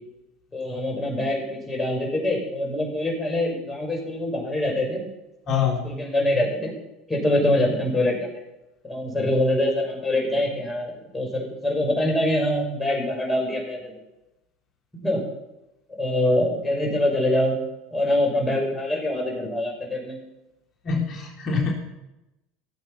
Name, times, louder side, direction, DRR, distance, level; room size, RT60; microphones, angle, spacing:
voice 1, 0.5-5.0 5.6-6.7 7.1-8.3 8.8-13.9 14.9-15.2 16.0-17.6 17.9-20.2, left 1 dB, 15° left, -1 dB, 6.0 m, -24 dB
voice 2, 5.5-6.0 20.8-21.7, left 6 dB, 40° left, 0 dB, 3.2 m, -25 dB
17.5 x 7.5 x 5.8 m, 0.96 s
hypercardioid pair, 80°, 0 cm